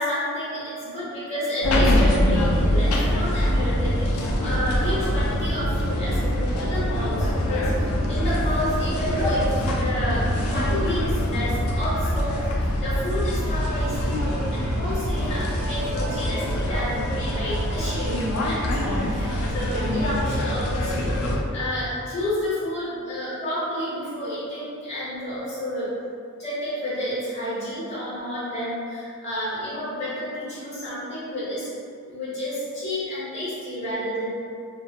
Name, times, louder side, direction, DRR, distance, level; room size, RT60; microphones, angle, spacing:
voice 1, 0.0-12.5 12.8-25.9 26.4-31.7 32.1-34.3, left 1 dB, 30° left, -11 dB, 0.6 m, -30 dB
sound 1, 1.6-21.4, equal, 70° left, 0.3 m, -24 dB
Choir Loop, 13.3-20.7, right 2 dB, 35° right, 0.3 m, -38 dB
2.2 x 2.1 x 2.6 m, 2.3 s
head